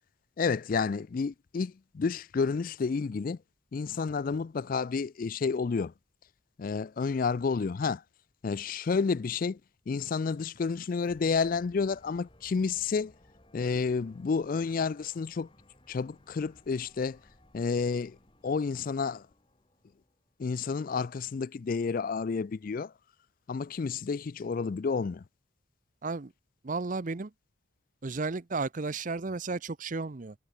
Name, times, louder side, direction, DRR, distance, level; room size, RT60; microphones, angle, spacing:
voice 1, 0.4-3.4 3.7-5.9 6.6-8.0 8.4-9.6 9.9-13.1 13.5-15.5 15.9-17.2 17.5-18.2 18.4-19.3 20.4-22.9 23.5-25.2, left 5 dB, 40° left, 0.3 m, -30 dB
sound 1, 10.2-20.3, left 1 dB, 25° left, 4.0 m, -61 dB
voice 2, 26.6-27.3 28.0-30.3, right 3 dB, 40° right, 0.6 m, -33 dB
head